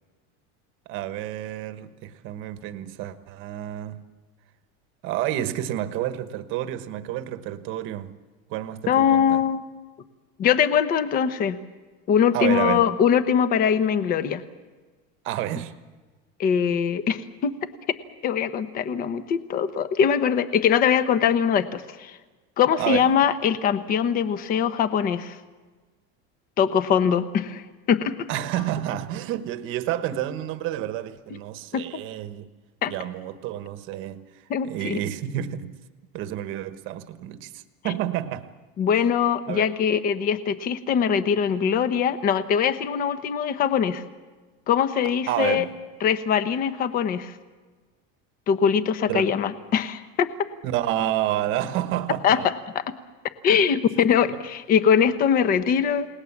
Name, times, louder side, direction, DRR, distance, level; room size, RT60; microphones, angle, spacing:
voice 1, 0.9-4.0 5.0-8.2 8.5-9.4 12.3-12.9 15.2-15.7 22.8-23.1 28.3-32.5 32.9-35.7 36.1-38.5 39.5-39.7 45.3-45.7 49.1-49.3 50.6-52.5, right 12 dB, 40° right, 1.2 m, -29 dB
voice 2, 8.9-9.6 10.4-11.6 12.1-14.4 16.4-17.5 18.2-22.2 22.6-25.4 26.6-28.3 31.3-31.4 31.7-32.0 32.8-32.9 34.5-35.0 37.8-37.9 38.8-44.0 44.7-45.6 46.0-47.3 48.5-50.3 52.2-52.4 53.4-56.1, left 8 dB, 30° left, 1.1 m, -22 dB
30.0 x 19.0 x 7.3 m
cardioid pair, 180°, 30 cm